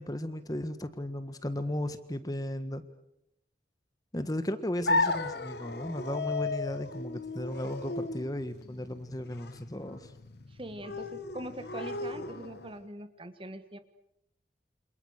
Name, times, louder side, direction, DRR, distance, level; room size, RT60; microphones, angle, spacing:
voice 1, 0.0-2.8 4.1-10.1, left 1 dB, 20° left, 11 dB, 1.5 m, -35 dB
sound 1, 4.9-12.8, left 2 dB, 65° left, 1.6 m, -35 dB
voice 2, 10.5-13.8, right 1 dB, 30° right, 10 dB, 1.6 m, -42 dB
29.0 x 26.5 x 6.6 m, 0.78 s
head